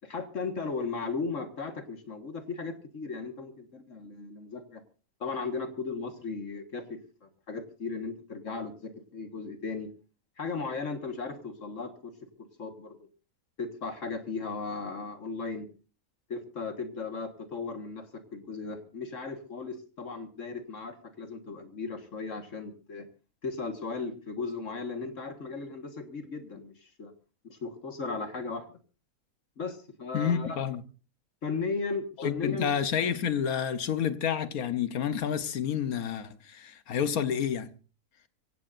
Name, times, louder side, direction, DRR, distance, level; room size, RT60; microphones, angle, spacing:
voice 1, 0.0-4.8 5.2-6.8 7.2-9.9 10.4-12.1 12.4-13.0 13.6-15.7 16.3-18.1 18.3-23.1 23.4-27.1 27.4-28.7 29.6-30.6 31.4-32.7, left 4 dB, 60° left, 1.9 m, -36 dB
voice 2, 30.1-30.8 32.2-37.7, left 8 dB, 80° left, 1.5 m, -29 dB
24.5 x 16.5 x 2.6 m
omnidirectional pair, 1.5 m